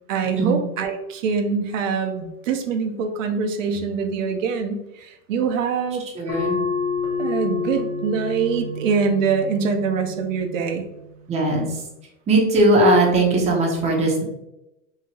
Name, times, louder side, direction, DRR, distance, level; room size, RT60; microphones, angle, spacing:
voice 1, 0.1-6.0 7.2-10.8, right 5 dB, 85° right, 6 dB, 0.6 m, -24 dB
voice 2, 6.1-6.6 11.3-11.8 12.3-14.2, right 1 dB, 15° right, -1 dB, 0.6 m, -19 dB
sound 1, 6.3-11.4, left 4 dB, 70° left, 1.0 m, -29 dB
2.8 x 2.7 x 2.7 m, 0.92 s
supercardioid pair, 130°, 38 cm